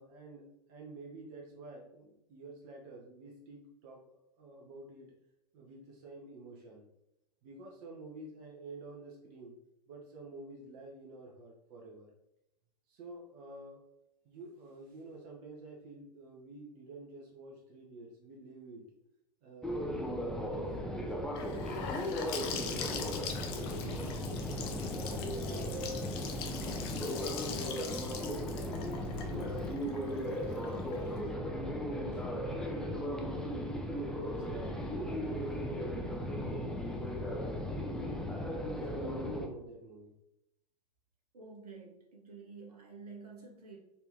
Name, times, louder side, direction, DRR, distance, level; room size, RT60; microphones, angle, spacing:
voice 1, 0.0-5.1 5.5-6.9 7.4-9.6 9.9-12.1 12.9-13.8 14.2-18.9 19.4-23.2 23.6-26.0 26.5-28.9 29.2-33.5 34.1-36.4 38.6-40.1, right 2 dB, 40° right, -2 dB, 0.9 m, -50 dB
sound 1, 19.6-39.5, equal, 5° left, 0.4 m, -36 dB
Gurgling / Sink (filling or washing) / Bathtub (filling or washing), 21.4-31.2, left 7 dB, 40° left, 0.6 m, -42 dB
voice 2, 41.3-43.8, right 4 dB, 70° right, -1 dB, 1.2 m, -50 dB
4.3 x 2.8 x 3.5 m, 0.87 s
figure-of-eight pair, 100°, 21 cm